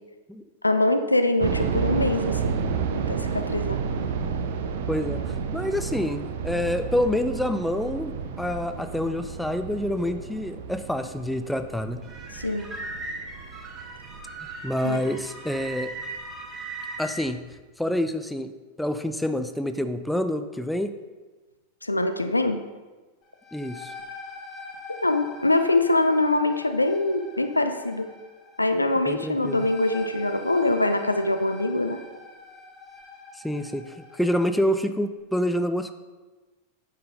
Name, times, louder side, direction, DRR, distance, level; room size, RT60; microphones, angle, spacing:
voice 1, 0.6-2.6 2.9-3.8 12.3-12.7 14.8-15.0 21.8-22.6 25.0-28.1 28.6-32.0, left 2 dB, 85° left, 8 dB, 0.4 m, -23 dB
sound 1, 1.4-16.3 16.6-16.7 17.3-17.5, right 6 dB, 55° right, 0.5 m, -31 dB
voice 2, 4.9-12.0 14.6-15.9 17.0-17.4 17.8-18.5 18.8-20.9 23.5-23.9 29.1-29.7 33.3-35.9, left 1 dB, ahead, 8 dB, 0.4 m, -27 dB
sound 2, 12.0-17.2, right 2 dB, 15° right, 1.2 m, -38 dB
sound 3, 23.2-34.7, left 4 dB, 30° left, 1.4 m, -44 dB
9.3 x 5.6 x 2.7 m, 1.3 s
figure-of-eight pair, 90°, 0 cm